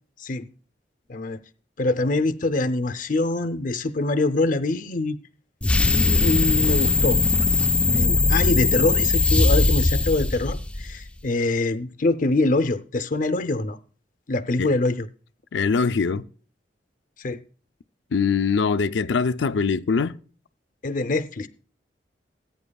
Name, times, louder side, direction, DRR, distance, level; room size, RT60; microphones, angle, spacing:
voice 1, 1.8-5.2 5.8-7.2 7.8-13.8 14.3-15.1 17.2-17.4 20.8-21.5, left 2 dB, 45° left, 0.6 m, -24 dB
sound 1, 5.6-11.0, left 2 dB, 5° left, 0.4 m, -20 dB
voice 2, 15.5-16.2 18.1-20.2, left 5 dB, 85° left, 0.5 m, -22 dB
19.5 x 9.1 x 2.3 m
head